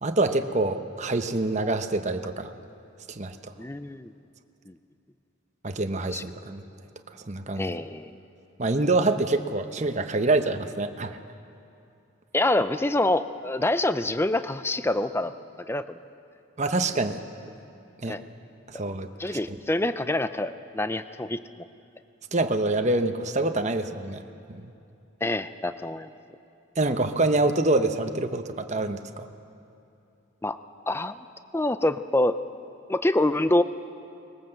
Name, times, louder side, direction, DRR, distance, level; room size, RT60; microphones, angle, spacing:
voice 1, 0.0-2.5 3.1-3.5 5.6-6.6 7.3-7.8 8.6-11.2 16.6-17.2 18.0-18.2 18.7-19.6 22.3-24.2 24.5-24.7 26.8-29.3, right 2 dB, 35° right, 7 dB, 1.0 m, -26 dB
voice 2, 3.6-4.1 4.7-4.8 6.1-6.2 7.6-8.1 12.3-15.3 15.7-16.0 18.1-18.2 19.2-21.4 25.2-26.1 30.4-30.6 30.9-31.2 31.5-32.4 32.9-33.6, left 1 dB, 10° left, 12 dB, 0.5 m, -26 dB
20.5 x 19.5 x 7.8 m, 2.7 s
head